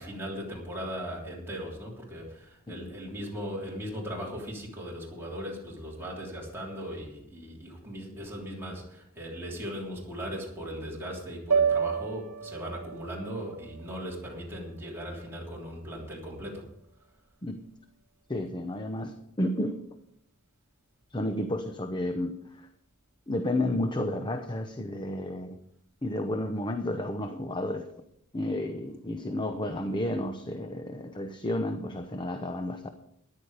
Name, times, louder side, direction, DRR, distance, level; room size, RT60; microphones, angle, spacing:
voice 1, 0.0-16.7, equal, 10° right, -4 dB, 3.3 m, -38 dB
sound 1, 11.5-15.8, right 6 dB, 85° right, 0.8 m, -31 dB
voice 2, 18.3-19.9 21.1-22.7 23.3-25.6 26.0-27.9 28.3-32.9, left 1 dB, 20° left, 7 dB, 0.8 m, -31 dB
14.0 x 10.5 x 4.9 m, 0.77 s
head